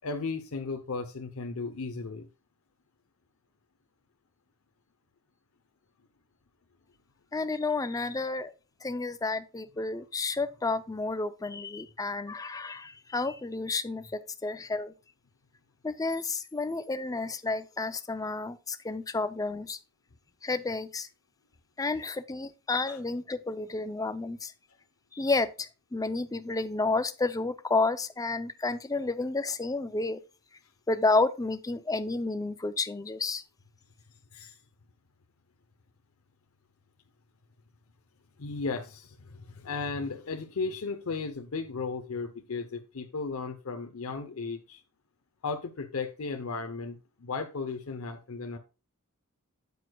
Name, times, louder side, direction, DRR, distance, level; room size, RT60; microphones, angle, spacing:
voice 1, 0.0-2.3 22.9-23.0 34.3-34.6 38.4-44.8 45.4-48.6, left 4 dB, 70° left, 0.7 m, -35 dB
voice 2, 7.3-8.5 8.8-14.9 15.8-19.8 20.4-21.1 21.8-24.5 25.1-30.2 30.9-33.4, left 3 dB, 15° left, 0.5 m, -31 dB
9.2 x 8.1 x 2.3 m
head